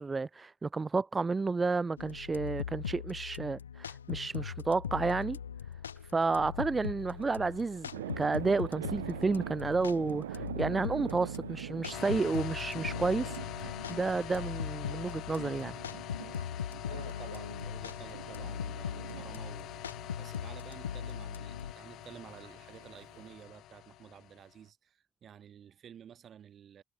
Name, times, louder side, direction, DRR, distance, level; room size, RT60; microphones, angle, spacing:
voice 1, 0.0-5.4 6.1-15.8, right 4 dB, 30° right, 0.4 m, -31 dB
sound 1, 2.0-21.7, left 8 dB, 90° left, 0.7 m, -40 dB
sound 2, 7.0-23.3, right 13 dB, 85° right, 0.6 m, -46 dB
sound 3, 11.9-24.5, left 14 dB, 65° left, 1.3 m, -45 dB
voice 2, 16.9-26.8, right 9 dB, 50° right, 1.7 m, -52 dB
hypercardioid pair, 50°, 0 cm